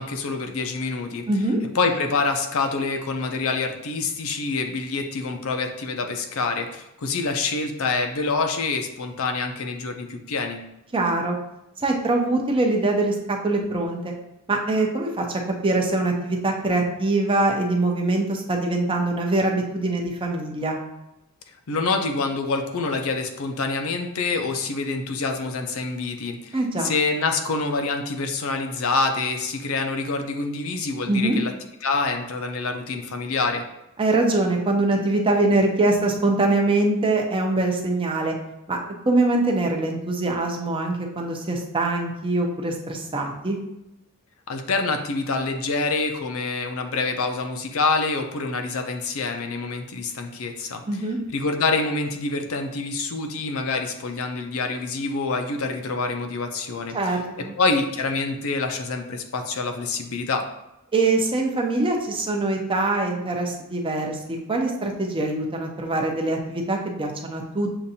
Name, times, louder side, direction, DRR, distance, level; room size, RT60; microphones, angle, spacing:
voice 1, 0.0-1.3 1.7-10.6 21.7-31.5 31.8-33.6 44.5-50.8 51.3-60.5, left 3 dB, 70° left, 5 dB, 0.5 m, -26 dB
voice 2, 1.3-1.6 10.9-11.4 11.8-14.1 14.5-20.8 26.5-26.9 31.1-31.4 34.0-38.3 38.7-38.8 39.1-43.6 50.9-51.2 56.9-57.6 60.9-67.7, right 2 dB, 25° right, 1 dB, 0.6 m, -23 dB
6.7 x 2.5 x 2.7 m, 0.89 s
head